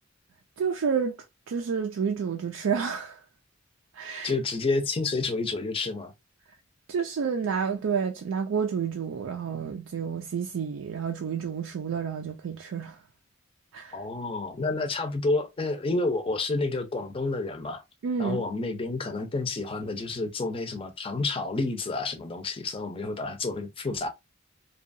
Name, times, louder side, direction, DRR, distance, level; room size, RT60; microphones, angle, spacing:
voice 1, 0.6-1.2 1.5-3.2 3.9-4.3 6.9-13.0 13.7-14.0 18.0-18.4, right 6 dB, 85° right, 0.4 m, -29 dB
voice 2, 4.2-6.1 13.9-17.8 18.2-24.1, left 3 dB, 25° left, 0.5 m, -29 dB
2.7 x 2.3 x 2.5 m
head